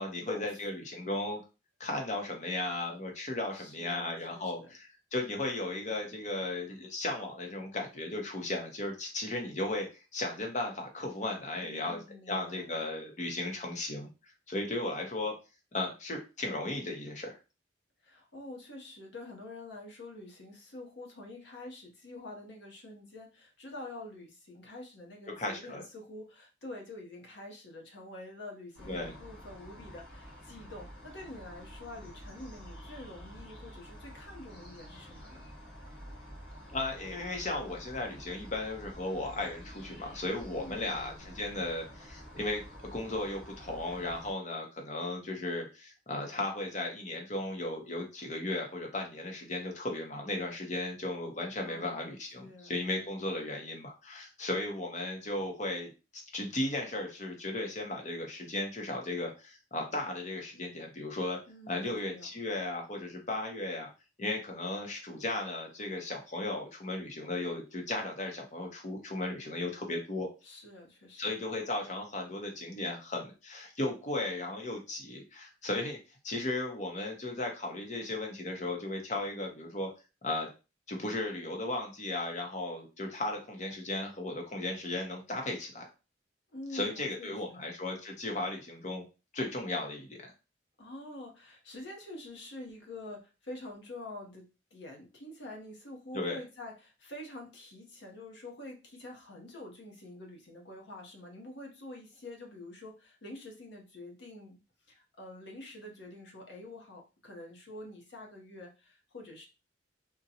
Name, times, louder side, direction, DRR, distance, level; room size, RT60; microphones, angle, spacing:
voice 1, 0.0-1.4 1.8-12.0 12.3-15.3 15.7-17.4 25.4-25.8 28.9-29.1 36.7-42.6 42.9-61.4 61.7-63.9 64.2-70.3 71.2-76.0 76.2-79.9 80.2-80.5 80.9-85.9 86.7-89.0 89.3-90.2 96.1-96.4, left 2 dB, 35° left, 2 dB, 0.7 m, -36 dB
voice 2, 3.5-4.7 11.6-12.7 18.0-35.5 40.5-41.4 51.6-52.8 61.5-62.3 70.4-71.2 86.5-87.7 90.8-104.6 104.9-109.5, left 1 dB, 65° left, 1 dB, 0.8 m, -47 dB
sound 1, 28.7-44.3, equal, 85° left, 1.7 m, -49 dB
3.8 x 2.1 x 2.8 m, 0.30 s
head